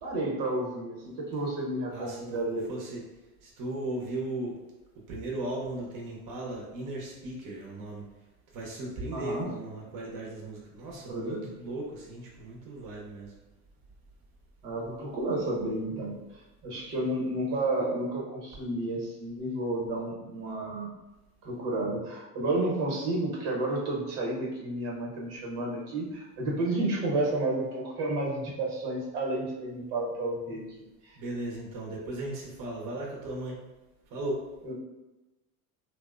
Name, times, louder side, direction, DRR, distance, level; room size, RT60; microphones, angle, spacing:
voice 1, 0.0-2.8 9.1-9.5 11.1-11.5 14.6-16.2 16.6-20.9 21.4-30.6 31.0-31.2 34.6-34.7, right 2 dB, 80° right, -3 dB, 1.0 m, -31 dB
voice 2, 1.9-3.0 3.4-4.6 5.1-8.0 8.5-13.3 16.7-17.1 31.2-33.7 34.1-34.4, right 1 dB, 45° right, -2 dB, 0.8 m, -37 dB
2.8 x 2.1 x 2.4 m, 1.0 s
supercardioid pair, 95°, 45 cm